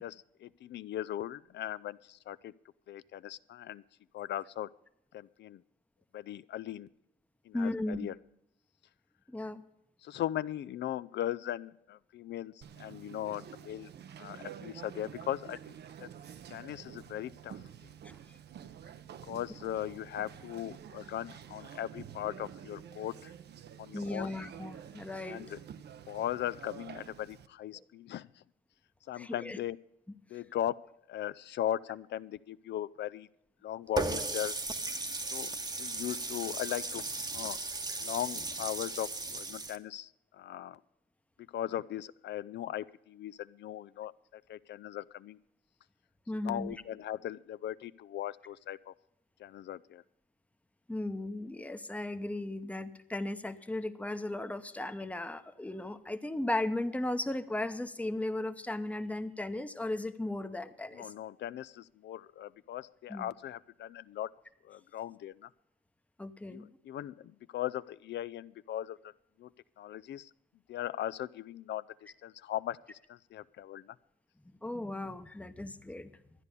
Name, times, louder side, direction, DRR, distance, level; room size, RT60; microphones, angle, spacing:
voice 1, 0.0-2.5 2.9-3.8 4.1-4.7 5.1-5.6 6.1-6.9 7.5-8.1 10.0-13.9 14.2-16.1 16.5-17.9 19.2-23.3 23.8-24.3 25.2-25.6 26.1-28.4 29.1-29.8 30.3-30.8 31.1-33.3 33.6-34.5 35.3-35.5 35.8-37.0 37.3-37.6 38.0-40.8 41.5-45.4 46.3-48.9 49.4-50.0 60.9-64.3 64.6-65.5 66.5-69.1 69.4-69.5 69.8-70.3 70.7-74.0, left 12 dB, 60° left, 17 dB, 0.4 m, -38 dB
voice 2, 7.5-8.1 9.3-9.6 18.0-18.2 23.9-25.4 27.7-27.8 29.1-29.6 46.3-46.8 50.9-61.1 63.1-63.3 66.2-66.7 74.6-76.1, left 1 dB, 5° left, 9 dB, 0.8 m, -36 dB
Conversation, 12.6-27.5, right 9 dB, 60° right, 0.7 m, -49 dB
Water tap faucet, 34.0-39.8, right 3 dB, 20° right, 1.0 m, -36 dB
12.5 x 9.7 x 6.7 m, 0.79 s
cardioid pair, 90°, 20 cm